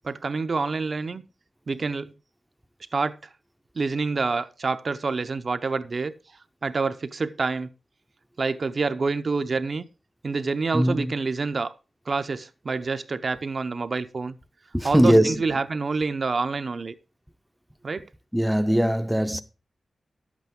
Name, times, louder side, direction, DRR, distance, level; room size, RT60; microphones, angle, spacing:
voice 1, 0.0-1.2 1.7-2.1 2.9-3.1 3.8-6.1 6.6-7.7 8.4-9.8 10.2-11.7 12.1-14.4 14.8-16.9 17.8-18.1, right 4 dB, 45° right, 0.6 m, -27 dB
voice 2, 10.7-11.1 14.7-15.4 18.3-19.4, equal, ahead, 0.5 m, -20 dB
11.0 x 8.2 x 3.6 m
wide cardioid pair, 155°, 0 cm